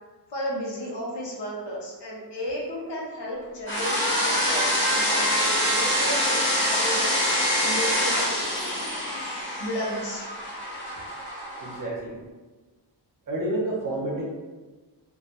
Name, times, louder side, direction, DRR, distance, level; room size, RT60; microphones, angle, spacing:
voice 1, 0.3-7.2 7.6-8.1 9.6-10.3, equal, 80° left, -4 dB, 0.7 m, -33 dB
sound 1, 3.7-11.8, equal, 30° left, 0.9 m, -25 dB
voice 2, 11.6-12.2 13.3-14.2, right 1 dB, 50° right, -3 dB, 0.6 m, -29 dB
2.3 x 2.1 x 2.7 m, 1.3 s
wide cardioid pair, 80°, 41 cm